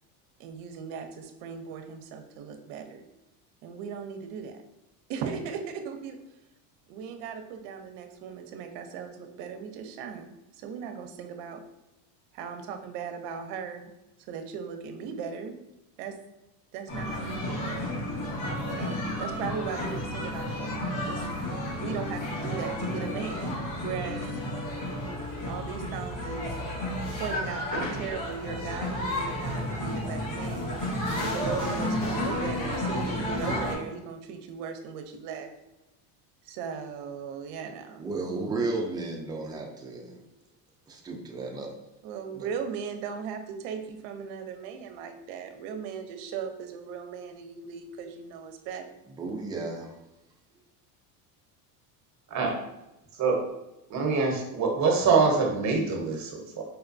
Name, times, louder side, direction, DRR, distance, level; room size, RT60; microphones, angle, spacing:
voice 1, 0.4-3.0 3.6-4.6 5.1-6.2 6.9-11.6 12.3-13.9 14.3-15.5 16.0-16.2 16.7-17.7 18.7-21.3 21.8-23.6 23.8-24.3 25.5-26.5 27.1-30.7 31.1-35.5 36.4-38.1 42.0-48.8, right 6 dB, 65° right, 6 dB, 0.6 m, -38 dB
sound 1, 16.9-33.7, left 1 dB, 75° left, 1.2 m, -32 dB
voice 2, 38.0-40.2 40.9-41.7 42.3-42.5 49.2-50.0, right 3 dB, 10° right, 0 dB, 0.4 m, -33 dB
voice 3, 53.9-56.6, right 4 dB, 40° right, 1 dB, 0.9 m, -24 dB
4.6 x 2.2 x 2.5 m, 0.94 s
supercardioid pair, 110°, 46 cm